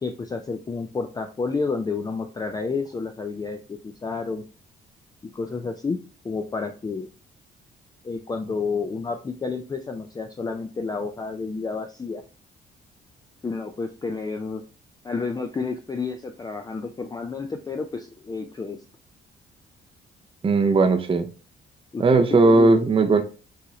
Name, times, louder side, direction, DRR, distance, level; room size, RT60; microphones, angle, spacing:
voice 1, 0.0-4.4 5.3-6.0 6.2-7.1 8.0-12.2 13.4-14.6 15.0-18.8 21.9-22.7, left 4 dB, 20° left, 5 dB, 0.4 m, -30 dB
voice 2, 20.4-21.3 22.0-23.2, right 3 dB, 25° right, 7 dB, 0.6 m, -17 dB
5.6 x 2.5 x 3.0 m, 0.34 s
cardioid pair, 90°, 20 cm